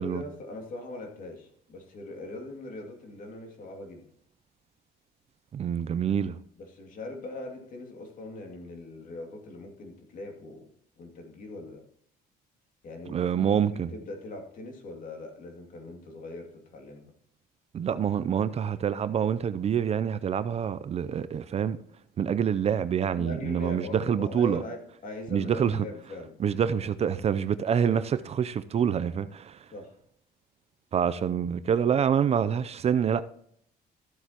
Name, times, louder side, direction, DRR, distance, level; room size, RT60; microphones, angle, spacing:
voice 1, 0.0-4.1 6.6-10.7 11.0-11.8 12.8-17.1 23.2-26.4 29.7-29.9, left 2 dB, 50° left, 2.4 m, -41 dB
voice 2, 5.5-6.4 13.1-13.9 17.7-21.8 22.2-24.6 25.3-25.8 26.4-29.6 30.9-33.2, right 8 dB, 40° right, 0.5 m, -26 dB
14.0 x 7.9 x 2.9 m
cardioid pair, 110°, 17 cm